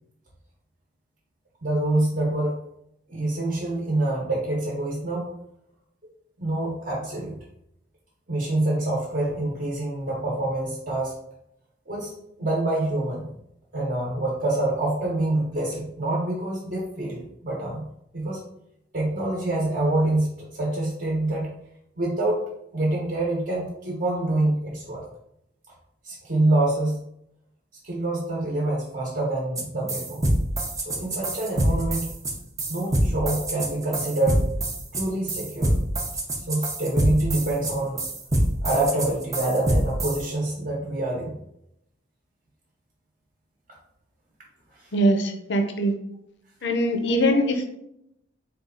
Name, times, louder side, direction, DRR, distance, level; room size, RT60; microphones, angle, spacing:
voice 1, 1.6-2.6 3.1-5.3 6.4-7.4 8.3-11.2 11.9-12.1 12.4-13.3 13.7-17.8 18.1-18.4 18.9-21.5 22.0-25.0 26.0-27.0 27.8-30.3 30.8-32.1 32.7-34.4 34.9-35.8 36.4-38.0 38.6-41.4 44.7-44.9 47.0-47.4, right 2 dB, 45° right, -3 dB, 0.9 m, -26 dB
sound 1, 29.6-29.7 29.9-40.2, right 1 dB, 15° right, 0.5 m, -25 dB
voice 2, 44.9-45.9 46.6-47.4, equal, 60° left, 5 dB, 0.5 m, -22 dB
4.2 x 2.3 x 3.7 m, 0.78 s
head